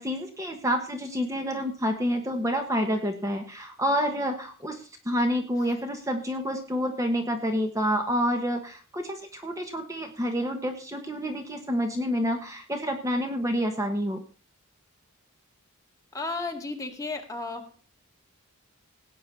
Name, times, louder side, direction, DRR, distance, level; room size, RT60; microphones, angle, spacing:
voice 1, 0.0-14.2, equal, 15° right, 5 dB, 1.3 m, -28 dB
voice 2, 16.1-17.7, left 3 dB, 15° left, 2 dB, 2.1 m, -33 dB
17.5 x 9.1 x 4.2 m, 0.36 s
head